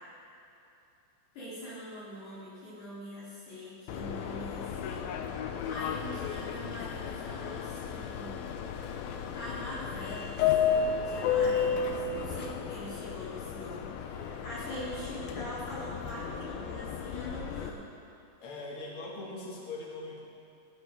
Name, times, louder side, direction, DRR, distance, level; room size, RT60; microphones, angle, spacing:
voice 1, 1.3-8.4 9.3-10.5 11.0-17.9, equal, 60° left, -10 dB, 5.1 m, -43 dB
Subway metro underground, 3.9-17.7, left 7 dB, 85° left, 2.1 m, -33 dB
voice 2, 18.4-20.2, left 2 dB, 40° left, -3 dB, 2.1 m, -41 dB
17.5 x 16.0 x 3.8 m, 2.8 s
omnidirectional pair, 5.3 m